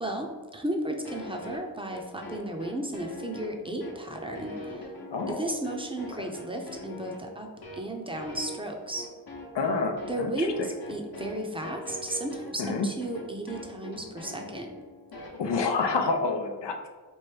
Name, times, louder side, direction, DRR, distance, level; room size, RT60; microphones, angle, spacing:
voice 1, 0.0-4.8 5.3-9.1 10.1-14.7, right 1 dB, 15° right, 2 dB, 0.6 m, -34 dB
sound 1, 1.0-15.9, left 1 dB, 60° left, 0.9 m, -42 dB
voice 2, 5.1-5.5 6.2-6.3 9.5-10.7 12.6-12.9 15.4-16.9, left 4 dB, 90° left, 4 dB, 0.6 m, -28 dB
4.5 x 2.6 x 3.3 m, 1.4 s
wide cardioid pair, 40°, 41 cm